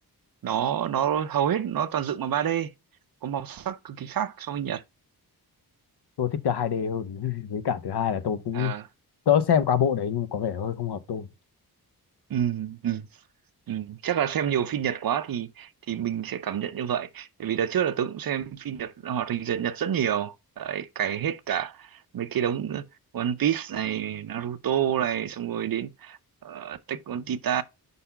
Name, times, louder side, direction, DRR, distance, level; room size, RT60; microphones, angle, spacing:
voice 1, 0.4-2.7 3.2-4.8 8.5-8.9 12.3-13.1 13.7-22.9 23.1-27.6, right 9 dB, 65° right, 0.7 m, -28 dB
voice 2, 6.2-8.7 9.3-11.3, left 8 dB, 80° left, 0.9 m, -25 dB
5.5 x 4.1 x 5.6 m
wide cardioid pair, 165°, 38 cm